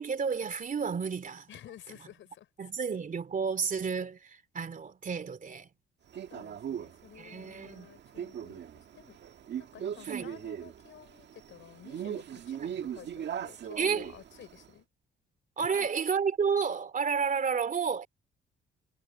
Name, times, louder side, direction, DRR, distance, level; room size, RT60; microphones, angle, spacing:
voice 1, 0.0-1.5 2.6-5.7 7.2-7.9 10.1-10.3 12.6-12.7 13.8-14.1 15.6-18.1, right 6 dB, 40° right, 2.8 m, -31 dB
voice 2, 1.5-2.5 6.3-9.2 9.6-14.9 15.6-15.9, left 11 dB, 75° left, 6.4 m, -52 dB
Male speech man speaking, 6.1-14.7, right 9 dB, 60° right, 1.8 m, -40 dB
cardioid pair, 90°, 20 cm